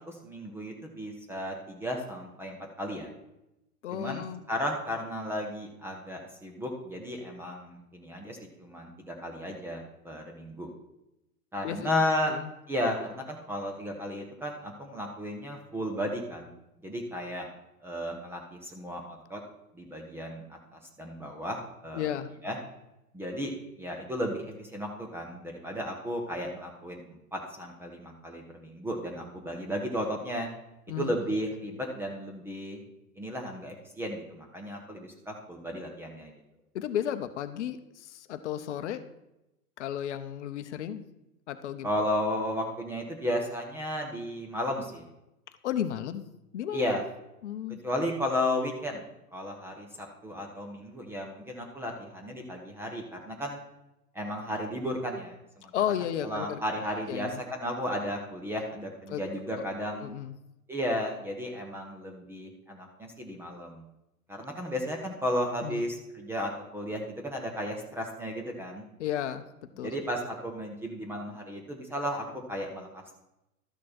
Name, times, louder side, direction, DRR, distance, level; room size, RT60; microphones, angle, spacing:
voice 1, 0.0-3.1 3.9-10.7 11.5-12.3 12.7-16.5 16.8-17.5 17.8-19.4 19.7-22.1 22.4-22.6 23.1-23.5 23.8-30.5 31.0-32.8 33.2-36.3 41.8-45.1 46.7-47.0 47.8-49.0 49.3-53.6 54.1-55.7 56.2-60.1 60.7-63.8 64.3-68.9 69.8-73.1, equal, 5° right, 1 dB, 0.6 m, -34 dB
voice 2, 3.8-4.4 11.6-11.9 12.3-12.5 21.9-22.3 30.9-31.1 36.7-39.0 39.8-41.0 41.5-41.9 45.6-46.2 46.5-46.8 47.4-47.8 55.7-56.6 57.1-57.4 59.1-59.2 60.0-60.3 65.6-65.8 69.0-69.4 69.8-70.0, left 10 dB, 50° left, 11 dB, 0.7 m, -33 dB
12.5 x 6.3 x 4.2 m, 0.91 s
figure-of-eight pair, 110°, 46 cm